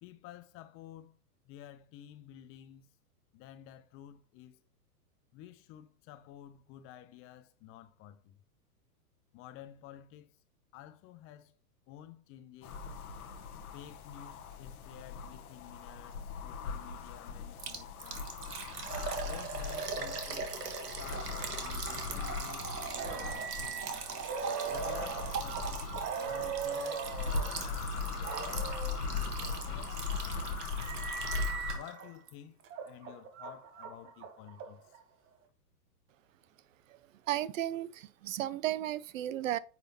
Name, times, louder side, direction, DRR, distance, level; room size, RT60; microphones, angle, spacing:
voice 1, 0.0-1.2 1.4-2.9 3.3-4.6 5.3-8.4 9.3-10.4 10.7-11.5 11.9-12.8 13.7-18.3 19.2-20.7 21.0-23.9 24.6-31.1 31.7-35.0, left 11 dB, 30° left, 0.7 m, -52 dB
sound 1, 12.6-31.8, left 5 dB, 65° left, 1.3 m, -39 dB
Liquid, 17.6-32.0 32.3-32.4 32.9-33.0, right 6 dB, 80° right, 1.6 m, -41 dB
sound 2, 23.0-27.5 28.2-29.0 29.7-32.1 32.6-35.0, right 6 dB, 25° right, 1.1 m, -40 dB
voice 2, 37.3-39.6, right 13 dB, 55° right, 0.6 m, -34 dB
9.6 x 4.1 x 2.9 m
hypercardioid pair, 110°, 47 cm